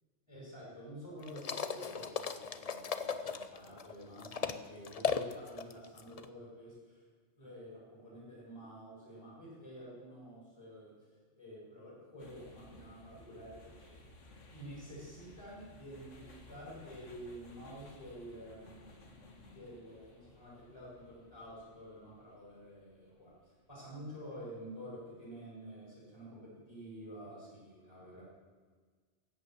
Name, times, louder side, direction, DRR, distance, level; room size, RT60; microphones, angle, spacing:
voice 1, 0.3-7.0 7.4-10.9 11.3-14.1 14.5-18.8 19.5-23.3 23.7-28.2, equal, 20° left, -6 dB, 5.4 m, -49 dB
sound 1, 1.2-4.6 4.8-6.2, left 6 dB, 40° left, 0.6 m, -37 dB
sound 2, 12.2-24.2, left 1 dB, 75° left, 2.0 m, -58 dB
15.5 x 8.8 x 7.6 m, 1.5 s
omnidirectional pair, 1.3 m